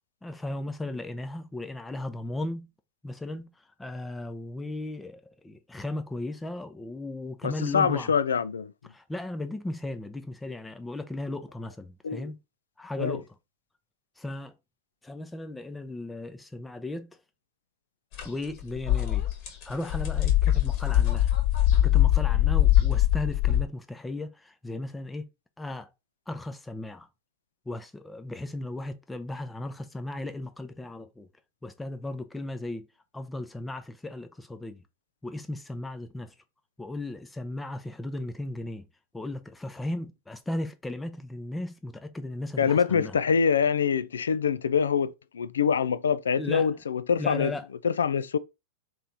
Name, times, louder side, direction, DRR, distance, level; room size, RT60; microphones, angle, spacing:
voice 1, 0.2-2.7 3.0-3.5 3.8-8.1 8.9-12.4 12.8-13.3 14.2-14.5 15.0-17.2 18.2-19.3 19.6-21.3 21.8-25.3 25.6-25.9 26.3-27.1 27.7-31.3 31.6-32.9 33.1-34.8 35.2-36.3 36.8-38.9 39.1-43.2 46.3-46.7 47.2-47.7, left 2 dB, 10° left, 0.6 m, -36 dB
voice 2, 7.4-8.7 12.0-12.3 13.0-13.2 42.6-47.5 47.8-48.4, left 6 dB, 75° left, 0.3 m, -25 dB
sound 1, 18.1-18.3 18.6-23.6, left 13 dB, 45° left, 1.4 m, -22 dB
3.3 x 3.0 x 3.9 m
figure-of-eight pair, 95°, 0 cm